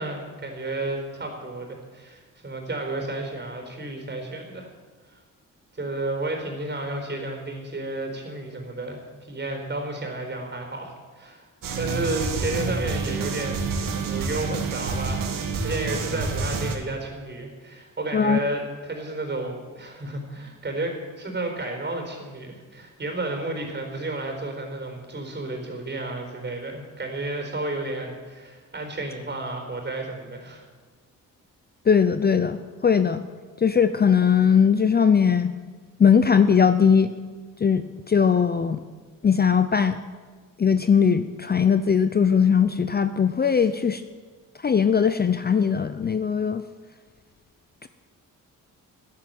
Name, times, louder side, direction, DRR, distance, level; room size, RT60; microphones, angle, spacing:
voice 1, 0.0-4.7 5.1-5.2 5.7-11.5 11.7-30.6, right 2 dB, 30° right, 3 dB, 4.4 m, -32 dB
sound 1, 11.6-16.8, right 4 dB, 80° right, 2.1 m, -28 dB
voice 2, 31.9-33.2 33.6-35.5 36.0-37.1 37.6-38.8 39.2-40.0 40.6-44.0 44.6-46.6 47.8-47.9, left 6 dB, 30° left, 11 dB, 0.6 m, -20 dB
13.5 x 10.5 x 9.1 m, 1.4 s
cardioid pair, 95°, 33 cm